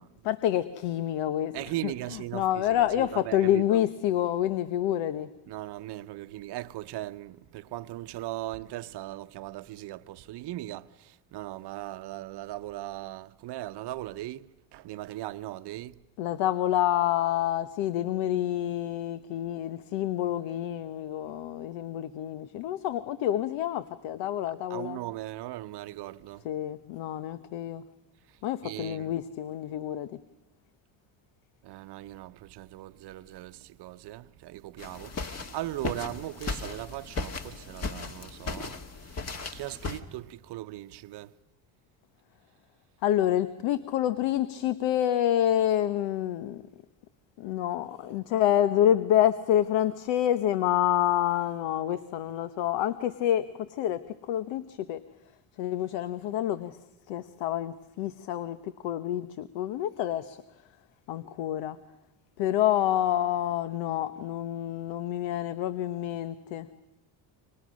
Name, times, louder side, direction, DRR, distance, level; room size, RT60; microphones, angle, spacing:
voice 1, 0.2-1.6 1.8-1.9 2.3-5.3 16.2-25.0 26.4-27.8 28.4-30.2 43.0-46.6 47.4-54.0 54.3-55.0 55.6-56.8 57.1-60.4 61.1-61.8 62.4-66.7, left 11 dB, 80° left, 1.1 m, -28 dB
voice 2, 1.5-3.8 5.5-16.0 24.7-26.5 28.3-29.2 31.6-39.2 39.5-41.3, right 15 dB, 60° right, 0.9 m, -39 dB
sound 1, 34.8-40.0, left 3 dB, 35° left, 1.9 m, -36 dB
30.0 x 25.0 x 6.4 m
cardioid pair, 110°, 45 cm